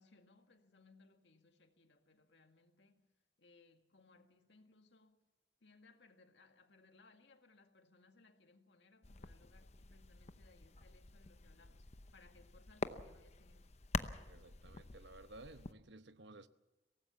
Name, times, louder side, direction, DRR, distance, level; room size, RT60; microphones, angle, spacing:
voice 1, 0.0-3.1 3.4-5.2 5.6-13.7, left 3 dB, 85° left, 2.0 m, -66 dB
sound 1, 9.0-15.7, left 3 dB, 40° left, 0.8 m, -46 dB
voice 2, 14.3-16.5, right 2 dB, 85° right, 1.0 m, -56 dB
23.5 x 18.0 x 7.1 m
head